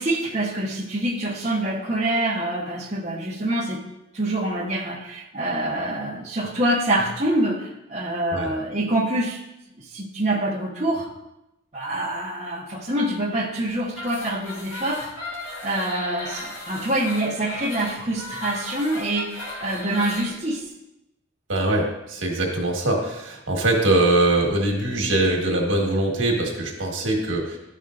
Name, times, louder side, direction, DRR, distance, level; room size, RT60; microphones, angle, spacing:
voice 1, 0.0-3.8 4.1-9.4 9.8-11.1 11.7-15.1 15.6-20.6, right 1 dB, 35° right, -4 dB, 1.1 m, -25 dB
sound 1, 13.9-20.3, left 2 dB, 90° left, 2.3 m, -36 dB
voice 2, 21.5-27.6, right 2 dB, 85° right, 0 dB, 1.5 m, -22 dB
12.0 x 5.4 x 2.5 m, 0.90 s
head